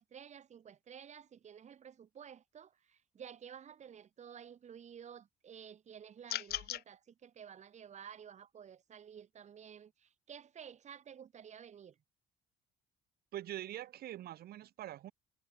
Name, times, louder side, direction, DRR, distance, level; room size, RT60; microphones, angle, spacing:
voice 1, 0.0-12.0, right 8 dB, 45° right, 2.3 m, -52 dB
sound 1, 6.3-6.8, left 15 dB, 70° left, 0.9 m, -38 dB
voice 2, 13.3-15.1, right 13 dB, 65° right, 2.7 m, -44 dB
cardioid pair, 110°, 17 cm